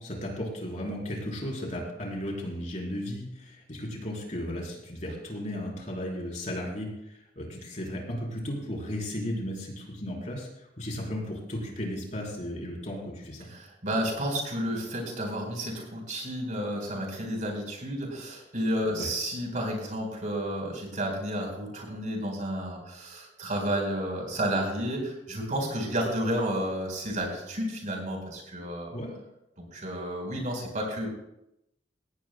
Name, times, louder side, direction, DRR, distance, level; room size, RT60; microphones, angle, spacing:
voice 1, 0.0-13.5 18.9-19.1 28.9-29.1, equal, 40° left, -2 dB, 4.3 m, -35 dB
voice 2, 13.5-28.9 29.7-31.1, equal, 45° right, 1 dB, 4.6 m, -31 dB
18.0 x 17.0 x 2.3 m, 0.85 s
head